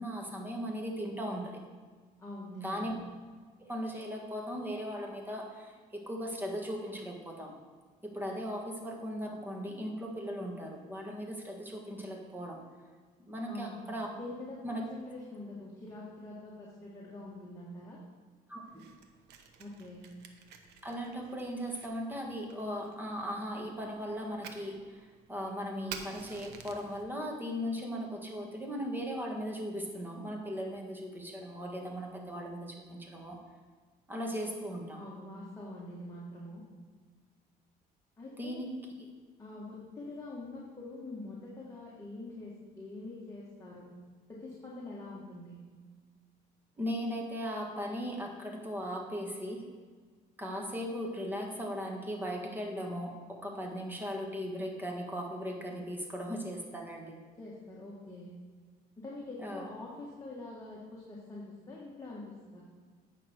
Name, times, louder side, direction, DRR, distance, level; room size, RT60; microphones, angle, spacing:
voice 1, 0.0-1.6 2.6-2.9 3.6-7.5 8.0-12.6 13.2-14.1 14.6-14.8 18.5-18.9 20.8-33.4 34.1-35.0 38.4-38.7 39.0-39.1 46.8-49.7 50.4-57.2 59.4-59.7, equal, 10° right, 0 dB, 1.6 m, -38 dB
voice 2, 2.2-2.9 13.5-13.8 14.2-18.0 19.6-20.0 34.9-36.6 38.2-38.6 39.4-43.9 44.3-45.6 57.4-58.3 59.0-62.6, left 2 dB, 20° left, -6 dB, 1.8 m, -45 dB
Fire, 18.6-27.0, right 7 dB, 85° right, 0.8 m, -51 dB
8.8 x 5.9 x 4.5 m, 1.5 s
cardioid pair, 110°, 17 cm